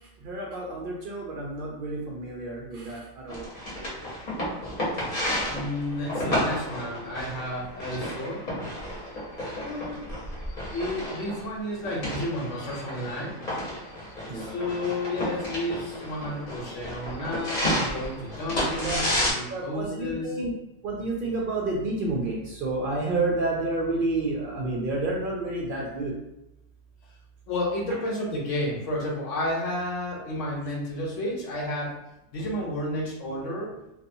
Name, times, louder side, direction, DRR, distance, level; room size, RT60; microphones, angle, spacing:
voice 1, 0.2-3.5 14.3-14.6 18.8-19.0 19.5-20.5 20.8-26.1, right 2 dB, 60° right, -2 dB, 0.6 m, -30 dB
sound 1, 3.3-19.3, equal, 40° left, 0.9 m, -32 dB
voice 2, 5.5-8.4 9.6-10.0 10.7-13.4 14.3-20.3 27.5-32.0 32.3-33.7, left 1 dB, 85° left, -3 dB, 1.2 m, -31 dB
2.7 x 2.3 x 2.6 m, 0.89 s
omnidirectional pair, 1.2 m